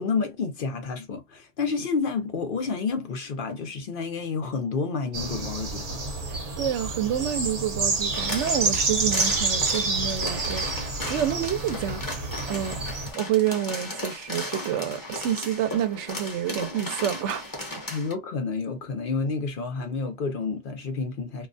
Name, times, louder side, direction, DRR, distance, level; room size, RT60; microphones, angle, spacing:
voice 1, 0.0-6.0 17.9-21.5, left 4 dB, 55° left, 0.7 m, -29 dB
sound 1, 5.1-13.1, right 3 dB, 40° right, 0.7 m, -28 dB
voice 2, 6.3-12.8 13.2-17.4, right 10 dB, 85° right, 0.9 m, -28 dB
sound 2, 8.1-18.1, left 1 dB, 20° left, 0.8 m, -36 dB
2.3 x 2.1 x 2.5 m
omnidirectional pair, 1.2 m